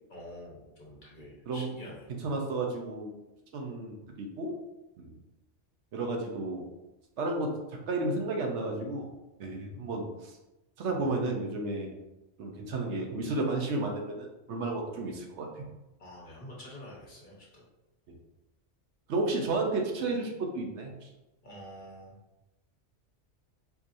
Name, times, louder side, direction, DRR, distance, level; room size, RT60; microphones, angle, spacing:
voice 1, 0.1-2.1 16.0-17.6 21.4-22.2, equal, 45° left, -5 dB, 1.1 m, -47 dB
voice 2, 2.2-3.1 3.5-4.5 5.0-5.1 5.9-6.7 7.2-7.6 7.9-9.1 9.4-10.3 10.8-11.9 12.4-15.7 18.1-18.2 19.1-21.1, right 2 dB, 70° right, 1 dB, 0.9 m, -32 dB
4.6 x 2.8 x 2.5 m, 0.99 s
omnidirectional pair, 1.2 m